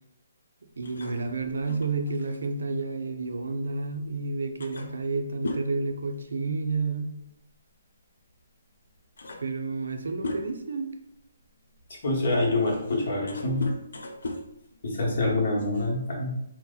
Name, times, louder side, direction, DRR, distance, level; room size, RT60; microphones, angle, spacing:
sound 1, 0.8-3.9 4.2-4.3 4.6-6.8 7.1-7.3 8.3-8.4 8.9-10.8 11.4-15.5, left 2 dB, 85° left, 0.4 m, -39 dB
voice 1, 0.8-7.1 9.4-11.0, right 3 dB, 90° right, 6 dB, 0.5 m, -30 dB
voice 2, 12.0-13.6 14.8-16.3, left 2 dB, 50° left, -2 dB, 1.1 m, -26 dB
2.8 x 2.1 x 3.8 m, 0.80 s
hypercardioid pair, 170°, 0 cm